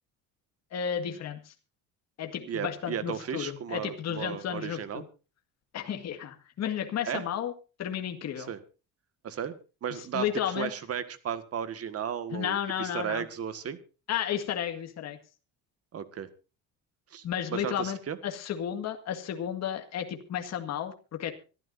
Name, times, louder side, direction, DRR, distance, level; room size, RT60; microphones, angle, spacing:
voice 1, 0.7-1.5 2.2-5.0 5.7-7.5 7.8-8.5 10.1-10.7 12.3-13.3 14.1-15.2 17.2-20.9 21.2-21.3, left 9 dB, 45° left, 5 dB, 2.0 m, -33 dB
voice 2, 2.5-5.0 7.1-7.2 8.4-8.6 9.2-9.6 9.8-13.8 15.9-16.3 17.1-17.2 17.5-18.2, right 8 dB, 40° right, 12 dB, 1.7 m, -35 dB
25.0 x 12.5 x 2.7 m, 0.34 s
cardioid pair, 135°, 36 cm